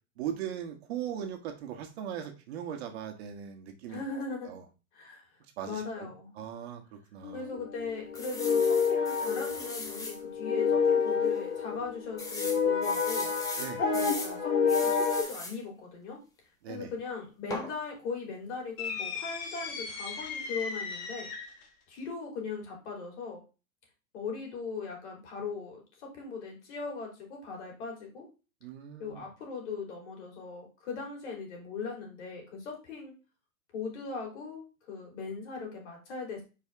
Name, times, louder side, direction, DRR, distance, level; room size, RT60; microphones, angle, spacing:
voice 1, 0.2-4.0 4.4-4.6 5.6-7.5 13.6-13.9 16.6-16.9 28.6-29.3, right 9 dB, 50° right, 5 dB, 1.4 m, -39 dB
voice 2, 3.9-4.5 4.9-5.2 5.6-6.3 7.3-13.3 13.9-16.2 16.7-21.3 21.9-23.4 24.1-28.3 29.0-33.1 33.7-36.4, left 4 dB, 55° left, 0 dB, 3.6 m, -39 dB
sound 1, 7.2-15.2, left 6 dB, 80° left, 2.4 m, -29 dB
sound 2, 8.1-10.2 10.7-10.8 11.1-11.2 12.2-14.3 14.7-15.6 17.5-17.7, left 2 dB, 10° left, 0.7 m, -39 dB
sound 3, 18.8-21.7, left 5 dB, 30° left, 1.4 m, -37 dB
6.3 x 4.8 x 3.6 m, 0.31 s
supercardioid pair, 155°, 41 cm